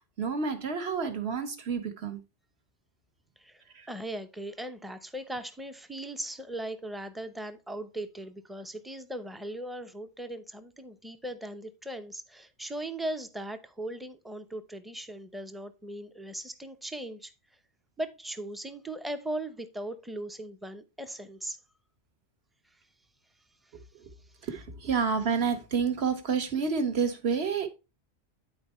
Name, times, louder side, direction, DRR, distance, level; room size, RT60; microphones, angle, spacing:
voice 1, 0.2-2.2 3.7-3.9 24.4-27.7, right 5 dB, 60° right, 1.5 m, -29 dB
voice 2, 3.4-17.3 18.0-21.6 22.7-22.8 23.6-23.8, right 1 dB, ahead, 0.5 m, -38 dB
10.5 x 4.5 x 4.3 m
omnidirectional pair, 1.2 m